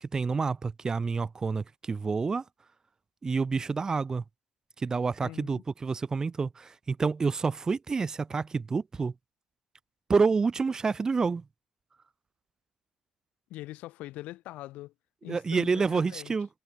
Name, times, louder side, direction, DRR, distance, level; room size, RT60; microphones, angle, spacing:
voice 1, 0.0-2.4 3.2-4.2 4.8-9.1 10.1-11.4 15.3-16.5, right 4 dB, 30° right, 1.0 m, -28 dB
voice 2, 5.2-5.6 13.5-14.9 15.2-16.3, left 17 dB, 85° left, 1.2 m, -42 dB
cardioid pair, 105°, 2 cm